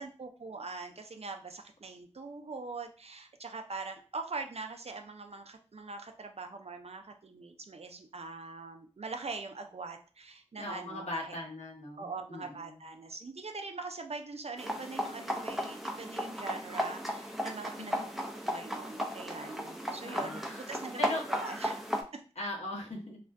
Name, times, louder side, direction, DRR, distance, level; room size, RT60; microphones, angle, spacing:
voice 1, 0.0-11.4 12.0-18.1 18.4-21.8 22.1-22.2, right 3 dB, 60° right, 5 dB, 0.4 m, -42 dB
voice 2, 10.6-12.8 17.8-18.1 20.0-20.6 21.0-21.2 22.4-23.2, left 1 dB, 70° left, -2 dB, 0.9 m, -39 dB
sound 1, 14.6-22.0, equal, ahead, 0.5 m, -35 dB
2.4 x 2.1 x 3.4 m, 0.37 s
wide cardioid pair, 55°, 12 cm